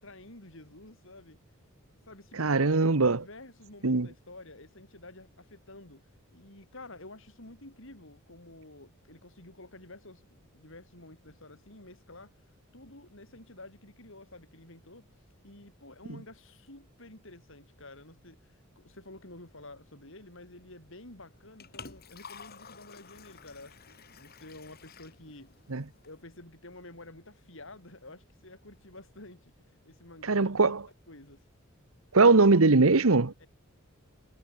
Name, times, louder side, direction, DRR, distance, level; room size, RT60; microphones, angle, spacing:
voice 1, 0.0-1.4 2.1-6.0 6.3-12.4 12.7-15.1 15.4-25.5 26.0-30.7 31.1-31.4 33.4-33.5, left 2 dB, 65° left, 6.5 m, -50 dB
voice 2, 2.4-3.2 3.8-4.1 25.7-25.8 30.2-30.8 32.1-33.3, right 3 dB, 80° right, 1.1 m, -21 dB
Liquid, 21.2-26.2, left 6 dB, 50° left, 3.4 m, -51 dB
head